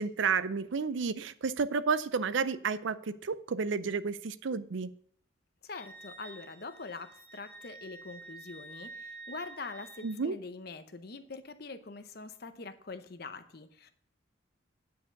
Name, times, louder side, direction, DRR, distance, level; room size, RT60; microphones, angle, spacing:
voice 1, 0.0-4.9 10.0-10.4, right 5 dB, 75° right, 15 dB, 0.5 m, -31 dB
voice 2, 5.6-13.9, left 3 dB, 50° left, 10 dB, 0.7 m, -44 dB
Wind instrument woodwind instrument, 5.7-10.2, right 3 dB, 10° left, 0.9 m, -49 dB
9.3 x 4.9 x 6.6 m, 0.63 s
head